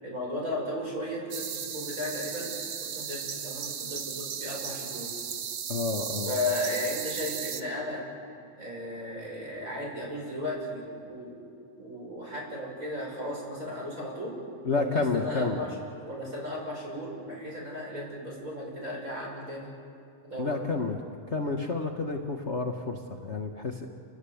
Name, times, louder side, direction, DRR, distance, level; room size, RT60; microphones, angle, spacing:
voice 1, 0.0-2.5 2.8-5.1 6.2-8.0 8.6-11.3 11.8-14.3 14.7-15.7 16.0-19.7 20.2-20.6, left 1 dB, 25° right, -3 dB, 7.0 m, -35 dB
sound 1, 1.3-7.6, right 7 dB, 75° right, 0.9 m, -36 dB
voice 2, 5.7-6.3 14.6-15.6 20.4-21.0 21.3-23.9, left 3 dB, 75° left, 2 dB, 0.6 m, -30 dB
30.0 x 19.5 x 8.5 m, 2.4 s
omnidirectional pair, 3.4 m